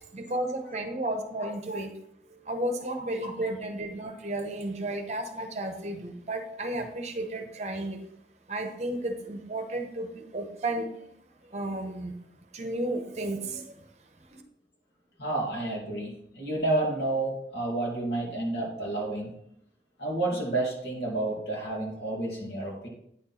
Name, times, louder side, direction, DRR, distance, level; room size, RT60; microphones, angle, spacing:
voice 1, 0.1-1.9 2.5-8.0 8.5-11.0 11.5-12.1 12.5-13.7 14.3-14.4, right 1 dB, 40° right, 5 dB, 0.8 m, -33 dB
voice 2, 1.4-1.8 3.2-3.3 15.2-19.4 20.0-22.9, right 2 dB, 80° left, -2 dB, 2.4 m, -30 dB
9.3 x 4.4 x 4.3 m, 0.72 s
head